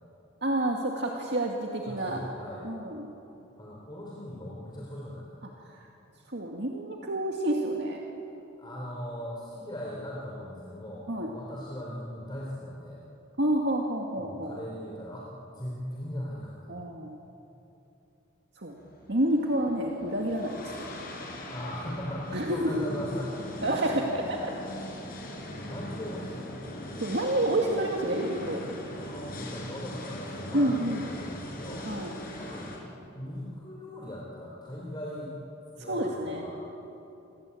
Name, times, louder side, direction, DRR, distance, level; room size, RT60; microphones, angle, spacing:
voice 1, 0.4-2.2 2.6-3.1 5.6-5.9 6.3-8.0 11.1-11.3 13.4-14.6 16.7-17.2 18.6-18.7 19.1-20.7 22.3-22.7 23.6-24.5 27.0-28.6 30.5-31.0 31.8-32.2 35.8-36.4, right 1 dB, 60° right, 0 dB, 2.2 m, -29 dB
voice 2, 1.9-2.6 3.6-5.5 8.6-13.0 14.1-16.8 21.5-23.4 25.3-26.7 28.9-31.9 32.3-32.8 33.1-35.4 35.8-36.5, equal, 25° left, -4 dB, 4.0 m, -39 dB
sound 1, 18.7-32.8, left 1 dB, 50° left, 6.0 m, -41 dB
28.5 x 22.5 x 8.6 m, 3.0 s
head